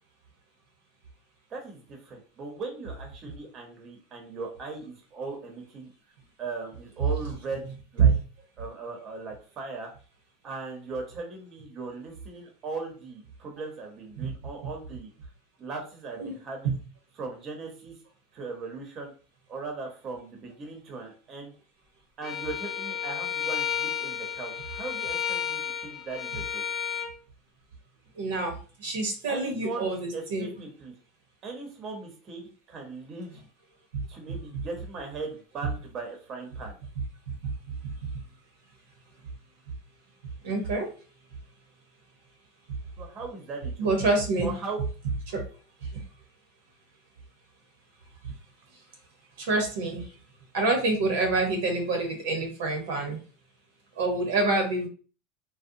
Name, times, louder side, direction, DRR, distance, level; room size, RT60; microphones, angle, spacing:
voice 1, 1.5-5.9 6.4-7.6 7.9-8.1 8.6-9.9 10.4-15.1 15.6-16.8 17.2-18.0 18.3-19.1 19.5-21.5 22.2-26.6 29.3-30.9 31.4-33.4 34.1-36.7 43.0-43.9 44.4-44.8, right 3 dB, 40° right, 2 dB, 0.8 m, -38 dB
Bowed string instrument, 22.2-27.1, left 8 dB, 35° left, 0.6 m, -32 dB
voice 2, 28.2-30.5 33.9-34.0 37.4-37.5 37.8-38.1 40.4-40.9 43.8-44.5 45.3-45.4 45.8-45.9 49.4-50.1 50.5-53.2 54.0-54.9, right 3 dB, 80° right, 2 dB, 0.8 m, -26 dB
2.6 x 2.1 x 2.6 m, 0.38 s
hypercardioid pair, 100°, 0 cm